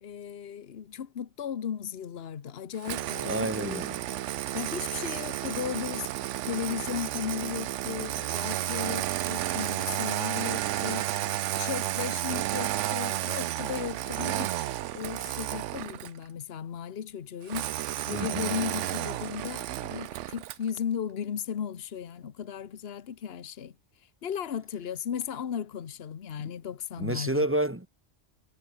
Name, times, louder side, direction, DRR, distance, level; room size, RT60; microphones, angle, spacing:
voice 1, 0.0-3.8 4.5-6.1 6.4-11.1 11.6-14.5 14.9-17.7 18.1-23.7 24.2-27.5, left 8 dB, 55° left, 1.2 m, -36 dB
Engine starting, 2.8-16.2 17.5-20.7, right 13 dB, 80° right, 0.9 m, -32 dB
voice 2, 3.2-4.0 18.1-18.5 27.0-27.9, right 1 dB, 10° right, 1.6 m, -30 dB
omnidirectional pair, 1.3 m